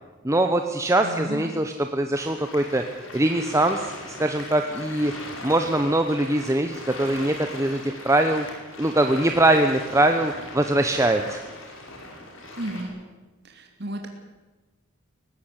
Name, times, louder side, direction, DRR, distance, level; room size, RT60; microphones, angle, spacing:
voice 1, 0.2-2.8 3.1-5.1 5.4-8.4 8.8-11.4, right 1 dB, 15° right, 6 dB, 0.9 m, -22 dB
voice 2, 1.0-1.5 12.6-12.9 13.4-14.1, right 1 dB, 55° right, 3 dB, 2.6 m, -33 dB
sound 1, 2.1-12.8, left 2 dB, 75° left, 5.0 m, -39 dB
19.0 x 15.5 x 9.9 m, 1.2 s
head